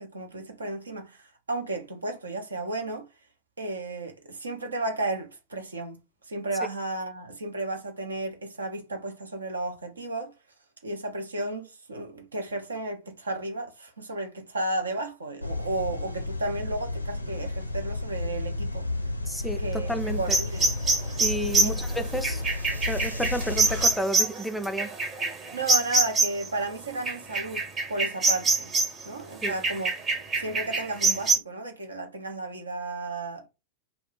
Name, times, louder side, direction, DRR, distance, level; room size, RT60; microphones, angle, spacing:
voice 1, 0.0-3.1 3.6-6.0 6.2-10.3 10.8-18.9 19.6-20.7 21.6-21.8 22.1-22.2 25.5-28.7 29.0-29.9 30.4-33.5, right 2 dB, 75° right, 0.7 m, -33 dB
sound 1, 15.4-23.9, left 2 dB, 85° left, 0.4 m, -32 dB
voice 2, 19.3-20.4 21.2-22.4 22.9-24.9 29.4-29.5, equal, 5° left, 0.4 m, -31 dB
sound 2, 20.3-26.5 27.1-29.0 29.4-31.4, right 3 dB, 25° right, 0.9 m, -25 dB
2.4 x 2.2 x 3.7 m
figure-of-eight pair, 90°, 0 cm